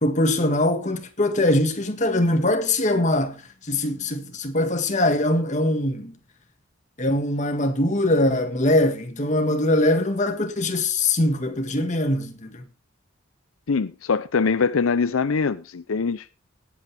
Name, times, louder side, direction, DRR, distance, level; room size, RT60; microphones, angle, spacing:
voice 1, 0.0-6.2 7.0-12.6, left 1 dB, 35° left, 1.8 m, -22 dB
voice 2, 13.7-16.2, left 5 dB, 85° left, 0.6 m, -23 dB
18.5 x 8.7 x 3.4 m
head